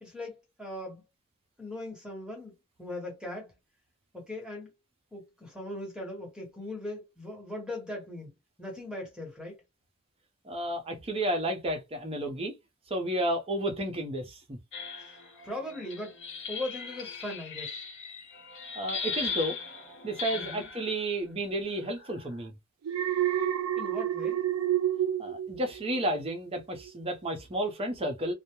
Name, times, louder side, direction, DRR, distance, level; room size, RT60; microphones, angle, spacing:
voice 1, 0.0-1.0 1.6-3.5 4.1-4.7 5.1-8.3 8.6-9.6 15.1-15.2 15.4-16.2 16.5-17.8 20.3-20.7 23.8-24.4, left 1 dB, 5° right, 1.0 m, -39 dB
voice 2, 10.4-12.6 12.9-14.6 18.8-19.6 20.0-22.5 25.2-28.3, right 1 dB, 25° right, 0.6 m, -32 dB
sound 1, 14.7-20.9 21.8-22.4, left 5 dB, 60° left, 0.9 m, -38 dB
Alarm, 22.8-26.2 26.5-26.9, right 11 dB, 80° right, 0.3 m, -29 dB
2.2 x 2.0 x 2.9 m
head